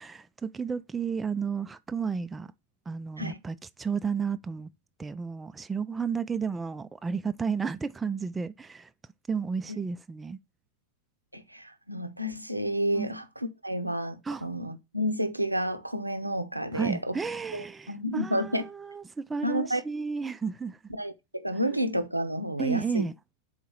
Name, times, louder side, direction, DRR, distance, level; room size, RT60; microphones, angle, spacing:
voice 1, 0.0-2.5 2.9-4.7 5.0-8.9 9.3-10.4 12.9-13.1 14.3-14.4 16.7-20.8 22.6-23.1, right 5 dB, 15° right, 0.3 m, -32 dB
voice 2, 11.3-17.2 17.5-18.6 19.4-19.8 20.9-23.1, equal, 85° right, 0.6 m, -30 dB
4.6 x 3.9 x 5.5 m
figure-of-eight pair, 90°, 0 cm